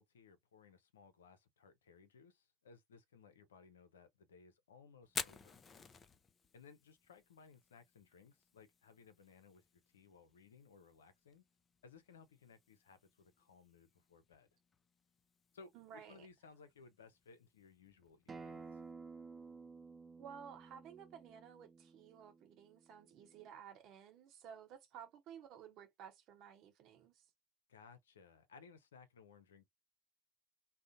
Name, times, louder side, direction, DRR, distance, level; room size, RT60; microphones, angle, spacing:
voice 1, 0.0-5.6 6.5-11.5 11.8-14.5 15.5-18.8 27.7-29.7, left 5 dB, 85° left, 0.5 m, -61 dB
Fire, 5.0-18.9, left 5 dB, 30° left, 0.4 m, -53 dB
voice 2, 15.7-16.3 20.2-27.3, right 8 dB, 55° right, 0.8 m, -55 dB
Acoustic guitar, 18.3-23.5, right 4 dB, 25° right, 0.4 m, -54 dB
2.4 x 2.1 x 2.7 m
hypercardioid pair, 70°, 0 cm